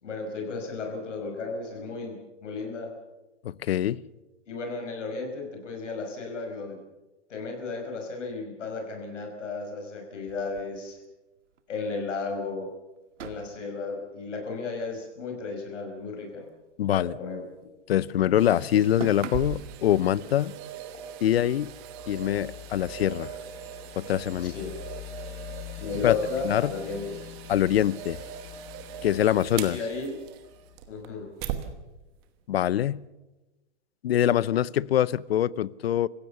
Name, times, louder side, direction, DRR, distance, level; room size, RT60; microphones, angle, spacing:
voice 1, 0.0-2.9 4.5-6.8 7.3-11.0 11.7-12.7 13.2-16.5 16.9-17.4 24.4-24.7 25.8-27.2 29.7-30.2 30.9-31.3, left 4 dB, 75° left, 2 dB, 5.5 m, -34 dB
voice 2, 3.4-4.0 16.8-17.1 17.9-20.5 21.2-21.7 22.1-23.3 24.0-24.5 26.0-26.2 26.4-26.7 27.5-28.2 29.0-29.8 32.5-33.0 34.0-36.1, left 11 dB, 55° left, 22 dB, 0.7 m, -24 dB
sound 1, 10.3-11.6 11.9-12.0 12.3-12.5 13.1-15.6 15.9-17.7 18.0-19.7, right 8 dB, 80° right, 1.7 m, -44 dB
sound 2, 18.4-31.7 32.2-32.3, right 10 dB, 20° right, 1.2 m, -41 dB
sound 3, 20.6-31.1, left 16 dB, 25° left, 0.8 m, -45 dB
28.0 x 16.0 x 6.9 m, 1.1 s
hypercardioid pair, 170°, 36 cm